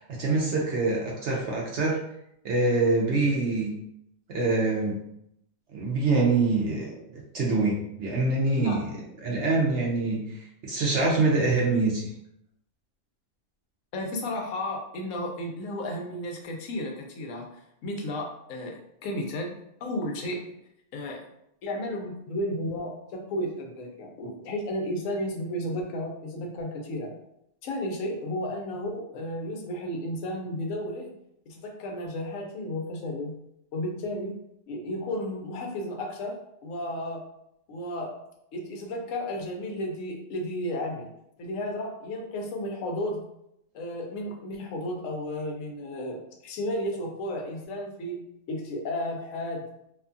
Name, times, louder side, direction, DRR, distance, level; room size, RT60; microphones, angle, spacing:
voice 1, 0.0-2.0 2.4-3.7 4.3-5.0 5.7-7.0 7.3-9.0 9.2-12.1, right 3 dB, 65° right, -2 dB, 0.7 m, -25 dB
voice 2, 13.9-17.5 17.8-19.5 19.8-20.4 20.9-21.2 21.6-27.1 27.6-31.1 31.5-33.4 33.7-34.4 34.7-37.3 37.7-38.2 38.5-41.1 41.4-43.2 43.7-49.7, left 1 dB, 70° left, 2 dB, 0.9 m, -33 dB
2.7 x 2.3 x 2.5 m, 0.78 s
omnidirectional pair, 1.5 m